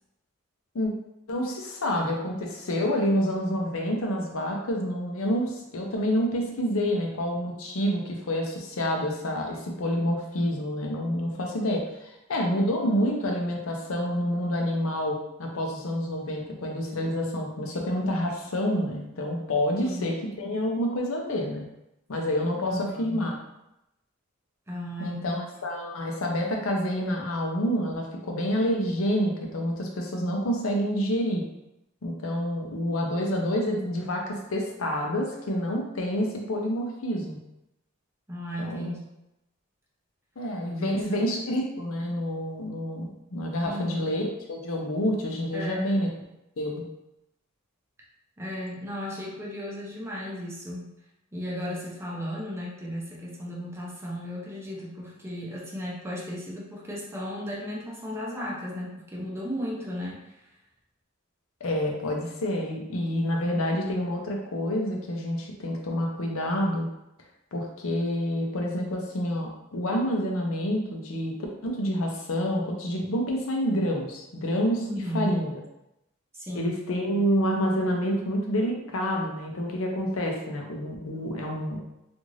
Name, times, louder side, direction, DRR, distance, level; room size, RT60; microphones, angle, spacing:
voice 1, 1.3-21.6 22.1-23.3 25.0-31.4 32.0-37.4 38.6-38.9 40.4-46.1 46.6-46.8 61.6-66.9 67.5-71.3 71.6-74.8 75.1-75.6 76.5-81.8, equal, 75° left, 1 dB, 0.6 m, -28 dB
voice 2, 19.8-20.1 22.6-23.3 24.7-25.4 38.3-39.1 40.8-41.2 43.6-44.0 45.5-46.0 48.4-50.9 51.3-60.4 74.8-75.4 76.3-76.7, equal, 15° right, -4 dB, 0.6 m, -35 dB
2.5 x 2.4 x 3.1 m, 0.88 s
head